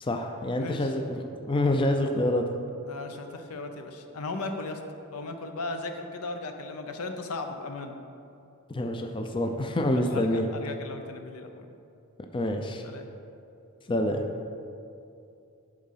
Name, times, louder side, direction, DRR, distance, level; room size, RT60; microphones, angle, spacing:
voice 1, 0.0-2.5 8.7-10.5 12.3-12.8 13.9-14.2, left 1 dB, 25° left, 4 dB, 0.4 m, -27 dB
voice 2, 0.6-0.9 2.9-4.8 5.1-7.9 10.0-11.7 12.8-13.1, left 3 dB, 75° left, 6 dB, 0.7 m, -36 dB
11.0 x 3.8 x 5.7 m, 2.6 s
head